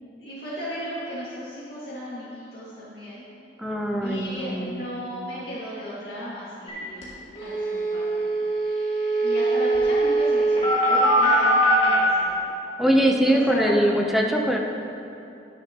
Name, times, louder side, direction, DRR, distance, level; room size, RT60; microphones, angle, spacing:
voice 1, 0.2-3.3 4.0-7.1 7.4-8.2 9.2-12.5 13.3-13.7, equal, 65° left, -11 dB, 2.0 m, -35 dB
voice 2, 3.6-5.0 12.8-14.6, equal, ahead, 0 dB, 0.7 m, -22 dB
sound 1, 6.7-6.8 7.0-7.1 7.4-11.9, right 1 dB, 35° left, 2.2 m, -22 dB
10.5 x 10.5 x 2.9 m, 2.8 s
head